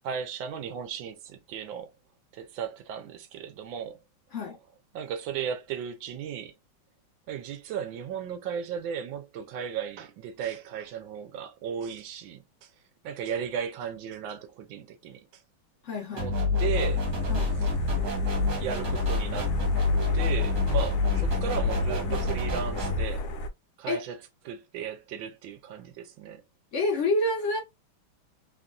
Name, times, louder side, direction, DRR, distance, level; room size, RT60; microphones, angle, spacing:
voice 1, 0.0-1.9 2.3-4.0 4.9-6.5 7.3-12.4 13.0-15.2 16.1-17.0 17.6-17.7 18.6-19.5 20.1-23.3 23.8-24.2 24.4-26.4, right 8 dB, 70° right, 1.3 m, -35 dB
voice 2, 15.8-16.7 17.3-17.5 23.9-24.0 26.7-27.6, left 2 dB, 50° left, 0.9 m, -28 dB
sound 1, 16.2-23.0, left 3 dB, 55° right, 1.5 m, -27 dB
sound 2, 16.7-23.5, left 1 dB, 75° left, 1.4 m, -33 dB
3.5 x 2.5 x 2.2 m
omnidirectional pair, 2.3 m